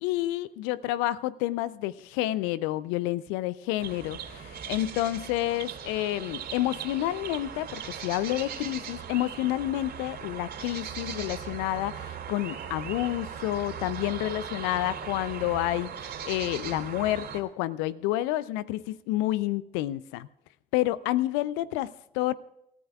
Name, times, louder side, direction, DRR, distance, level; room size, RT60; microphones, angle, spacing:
voice 1, 0.0-20.3 20.7-22.3, left 15 dB, 70° left, 18 dB, 0.5 m, -29 dB
sound 1, 3.8-17.4, right 8 dB, 55° right, 3.0 m, -39 dB
27.5 x 13.5 x 2.4 m, 0.83 s
hypercardioid pair, 50°, 20 cm